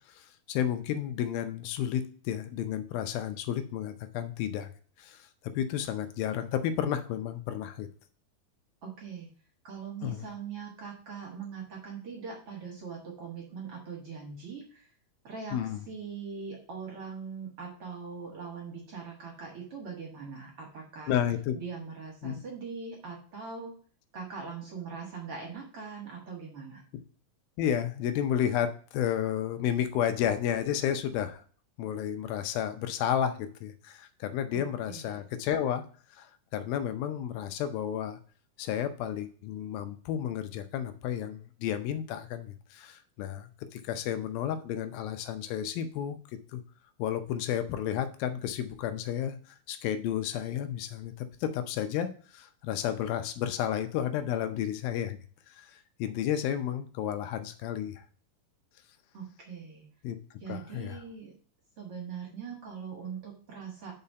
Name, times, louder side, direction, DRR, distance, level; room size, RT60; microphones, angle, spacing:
voice 1, 0.1-4.7 5.0-5.3 5.6-7.9 10.0-10.3 15.5-15.9 21.1-21.6 22.2-22.4 27.6-31.4 31.8-35.8 36.1-38.2 38.6-46.2 46.5-46.6 47.0-55.2 55.5-58.0 60.0-60.2 60.5-61.0, left 10 dB, 85° left, 9 dB, 2.5 m, -32 dB
voice 2, 8.8-9.3 9.6-14.9 15.2-15.6 15.9-21.1 21.6-23.7 24.1-26.8 34.5-35.0 59.1-59.8 60.4-61.3 61.8-63.9, right 5 dB, 50° right, -1 dB, 2.0 m, -41 dB
5.5 x 4.8 x 5.5 m, 0.42 s
omnidirectional pair, 4.2 m